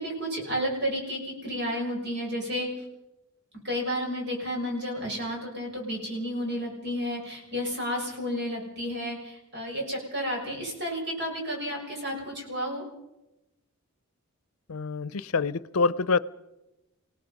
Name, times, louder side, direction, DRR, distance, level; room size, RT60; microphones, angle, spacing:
voice 1, 0.0-2.7 3.6-12.8, equal, 50° right, 0 dB, 6.5 m, -31 dB
voice 2, 14.7-16.2, left 4 dB, 80° left, 19 dB, 0.6 m, -26 dB
28.0 x 17.5 x 5.3 m, 0.96 s
head